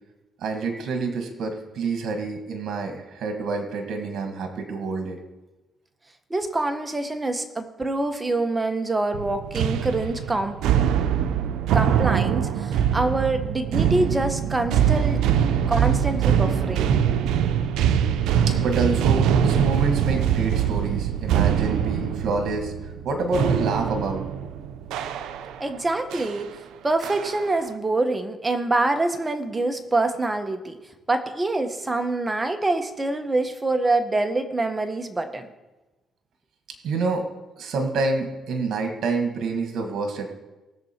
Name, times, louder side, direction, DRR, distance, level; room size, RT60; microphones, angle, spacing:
voice 1, 0.4-5.2 18.5-22.7 23.0-24.2 36.8-37.3 37.6-40.3, right 3 dB, 70° right, 4 dB, 1.7 m, -27 dB
voice 2, 6.3-10.6 11.7-15.2 15.7-16.9 25.6-26.5 26.8-30.8 31.1-35.5, right 2 dB, 20° right, 7 dB, 1.2 m, -25 dB
sound 1, 9.1-25.7 26.1-26.4 27.0-27.5, right 8 dB, 90° right, 0.6 m, -23 dB
19.0 x 7.1 x 4.5 m, 1.1 s
cardioid pair, 90°, 0 cm